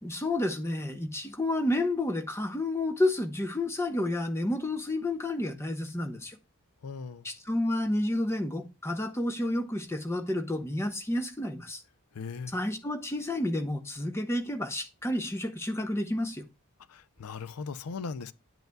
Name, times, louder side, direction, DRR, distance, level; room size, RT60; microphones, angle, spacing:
voice 1, 0.0-6.4 7.2-11.8 12.5-16.4, left 1 dB, 10° left, 0.7 m, -30 dB
voice 2, 6.8-7.3 12.1-12.5 16.9-18.3, left 5 dB, 85° left, 0.5 m, -38 dB
9.1 x 7.9 x 2.3 m
head